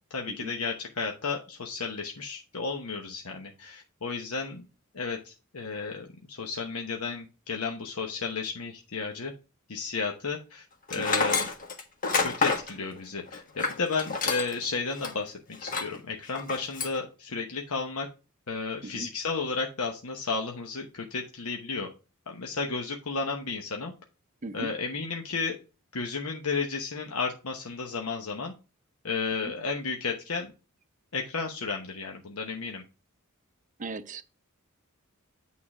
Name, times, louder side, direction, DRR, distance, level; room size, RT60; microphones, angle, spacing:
voice 1, 0.1-4.7 4.9-9.3 9.7-10.6 10.9-11.5 12.2-18.1 18.5-21.9 22.3-23.9 24.5-25.6 25.9-28.5 29.0-30.5 31.1-32.8, left 4 dB, 90° left, 1.0 m, -33 dB
Tools, 10.9-14.6 15.0-15.1 15.6-16.0 16.3-17.0, left 4 dB, 40° left, 1.4 m, -28 dB
voice 2, 11.0-11.3 18.8-19.1 24.4-24.7 29.4-29.5 33.8-34.2, right 2 dB, 35° right, 0.6 m, -38 dB
8.8 x 3.8 x 4.8 m
head